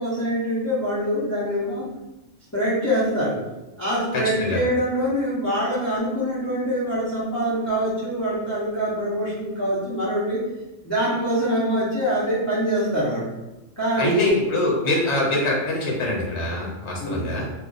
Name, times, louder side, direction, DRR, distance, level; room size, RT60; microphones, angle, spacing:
voice 1, 0.0-1.8 2.5-3.4 3.8-10.4 10.8-13.3 13.8-14.4 17.0-17.3, equal, 15° left, -10 dB, 0.6 m, -24 dB
voice 2, 4.1-4.6 14.0-17.5, left 1 dB, 60° left, -3 dB, 1.2 m, -24 dB
2.5 x 2.3 x 3.8 m, 1.0 s
omnidirectional pair, 1.3 m